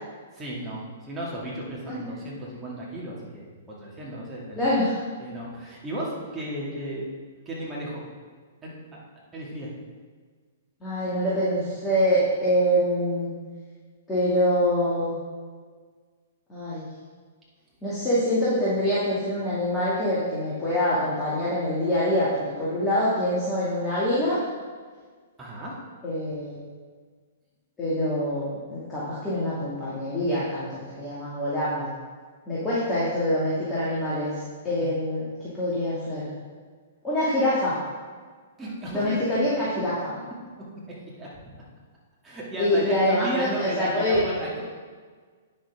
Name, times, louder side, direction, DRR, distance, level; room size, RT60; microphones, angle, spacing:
voice 1, 0.3-4.6 5.2-7.1 7.5-8.0 8.6-9.0 9.3-9.7 25.4-25.8 34.8-35.0 38.6-39.2 41.2-41.5 42.2-44.6, right 1 dB, 15° right, -6 dB, 2.3 m, -34 dB
voice 2, 4.6-4.9 10.8-13.3 14.1-15.2 16.5-16.8 17.8-24.4 26.0-26.7 27.8-31.9 32.5-34.3 34.6-35.3 35.5-36.3 37.0-37.8 38.9-39.9 42.6-44.2, equal, 15° left, -10 dB, 2.4 m, -25 dB
9.4 x 6.5 x 3.7 m, 1.6 s
figure-of-eight pair, 115°, 0 cm